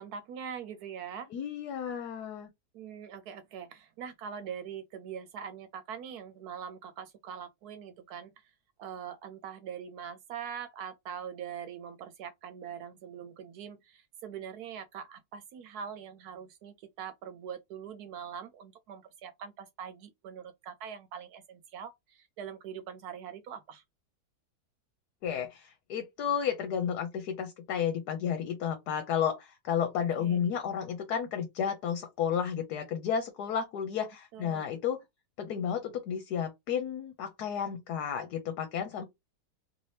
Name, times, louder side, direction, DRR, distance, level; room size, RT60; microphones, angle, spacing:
voice 1, 0.0-1.3 2.7-8.5 8.8-23.8 30.2-30.4 34.3-34.8 39.0-39.1, right 8 dB, 75° right, 1.1 m, -43 dB
voice 2, 1.3-2.5 25.2-35.0 35.4-39.0, left 8 dB, 80° left, 1.3 m, -32 dB
2.8 x 2.8 x 3.2 m
omnidirectional pair, 1.7 m